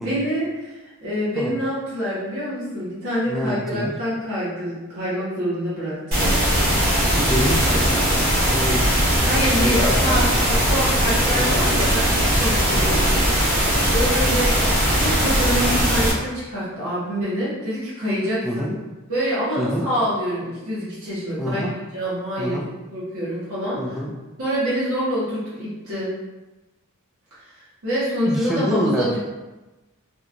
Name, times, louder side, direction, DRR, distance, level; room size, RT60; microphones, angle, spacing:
voice 1, 0.0-6.5 9.3-10.3 10.7-13.0 13.5-14.5 14.9-18.7 19.1-22.6 22.9-24.0 24.4-26.1 27.5-29.2, equal, 65° right, -9 dB, 0.9 m, -26 dB
voice 2, 3.3-3.9 7.1-8.8 9.6-10.4 11.3-11.6 12.7-13.0 18.4-18.7 19.6-19.8 21.4-21.7 22.4-22.6 23.8-24.1 28.3-29.1, equal, ahead, -3 dB, 0.3 m, -26 dB
sound 1, 6.1-16.1, equal, 40° right, 0.9 m, -19 dB
2.8 x 2.3 x 2.5 m, 1.1 s
head